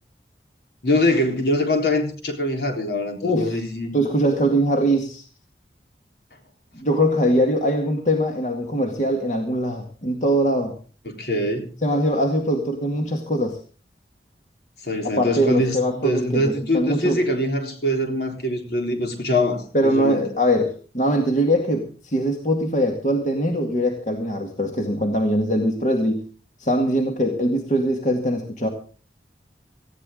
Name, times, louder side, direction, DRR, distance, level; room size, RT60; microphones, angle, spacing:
voice 1, 0.8-3.9 11.1-11.7 14.8-20.2, left 1 dB, 65° left, 3.8 m, -23 dB
voice 2, 3.2-3.6 3.9-5.2 6.7-10.8 11.8-13.6 15.0-17.2 19.7-26.2 26.6-28.7, equal, 45° left, 2.0 m, -22 dB
19.0 x 15.0 x 3.8 m
head